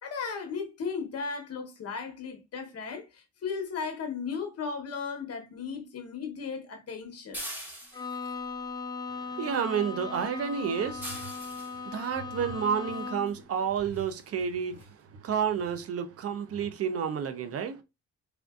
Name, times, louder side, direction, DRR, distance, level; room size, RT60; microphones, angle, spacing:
voice 1, 0.0-7.4, left 5 dB, 55° left, 1.0 m, -36 dB
sound 1, 7.3-8.3 11.0-11.8 13.3-13.4 13.9-14.1 14.4-14.5 14.8-14.9, equal, 5° right, 1.7 m, -41 dB
Bowed string instrument, 7.9-13.4, left 4 dB, 15° left, 0.3 m, -38 dB
voice 2, 9.1-17.8, right 7 dB, 50° right, 0.5 m, -31 dB
sound 2, 10.4-10.5 10.8-16.7, right 4 dB, 75° right, 1.6 m, -49 dB
3.5 x 2.5 x 2.3 m
cardioid pair, 90°, 30 cm